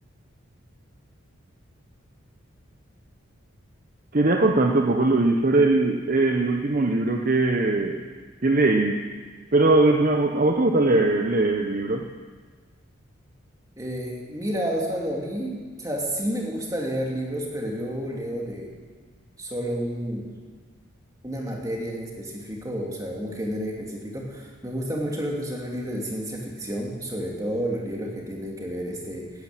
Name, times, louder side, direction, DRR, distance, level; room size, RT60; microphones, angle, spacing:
voice 1, 4.1-8.0 8.4-9.1 9.5-12.1, right 2 dB, 40° right, 3 dB, 0.8 m, -21 dB
voice 2, 13.8-18.7 19.4-20.4 21.2-29.3, equal, 15° right, -1 dB, 2.5 m, -30 dB
13.5 x 10.5 x 9.0 m, 1.5 s
head